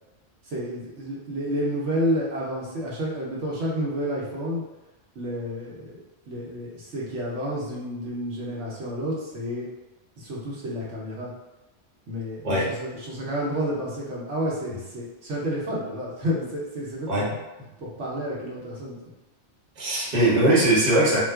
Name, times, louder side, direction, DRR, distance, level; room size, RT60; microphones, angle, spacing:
voice 1, 0.4-4.6 5.1-5.9 6.3-9.7 10.2-11.3 12.1-17.3 17.8-19.0, equal, 85° right, -5 dB, 1.1 m, -30 dB
voice 2, 19.8-21.2, right 1 dB, 40° right, -6 dB, 1.0 m, -20 dB
3.7 x 2.4 x 2.3 m, 1.0 s
omnidirectional pair, 1.2 m